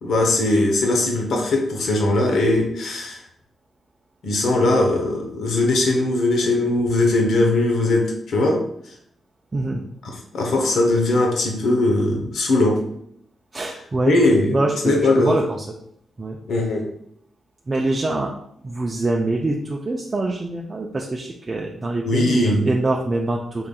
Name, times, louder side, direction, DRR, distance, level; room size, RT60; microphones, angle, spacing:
voice 1, 0.0-3.2 4.2-8.6 10.3-12.8 14.1-14.6 14.8-15.4 16.5-16.9 22.0-22.6, left 2 dB, 80° left, 1 dB, 0.7 m, -19 dB
voice 2, 9.5-9.8 13.5-14.1 14.5-15.7 16.2-16.4 17.7-18.3 18.6-23.7, right 2 dB, 35° right, 0 dB, 0.4 m, -24 dB
3.8 x 3.4 x 2.3 m, 0.69 s
cardioid pair, 70°, 0 cm